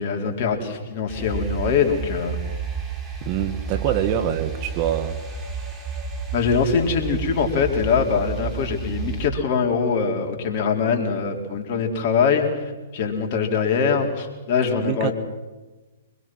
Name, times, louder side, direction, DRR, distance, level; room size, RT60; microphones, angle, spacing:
voice 1, 0.0-2.4 6.3-15.1, left 5 dB, 45° left, 2 dB, 3.8 m, -23 dB
sound 1, 1.1-9.3, right 5 dB, 20° right, 4.5 m, -31 dB
voice 2, 3.2-5.2 14.8-15.1, right 10 dB, 40° right, 10 dB, 1.6 m, -25 dB
25.0 x 21.5 x 6.2 m, 1.2 s
hypercardioid pair, 120°, 0 cm